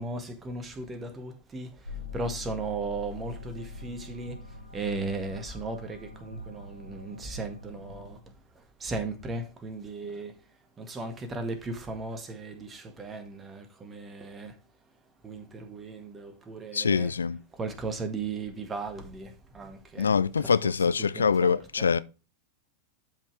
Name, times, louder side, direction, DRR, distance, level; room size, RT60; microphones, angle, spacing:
voice 1, 0.0-10.4 10.8-14.6 15.2-17.1 17.5-20.7 21.0-21.9, right 3 dB, 20° right, 1.8 m, -37 dB
sound 1, 1.9-8.1, left 3 dB, 85° right, 2.3 m, -43 dB
voice 2, 16.7-17.4 20.0-22.0, left 6 dB, 75° left, 0.4 m, -24 dB
12.0 x 5.8 x 3.3 m
figure-of-eight pair, 90°, 0 cm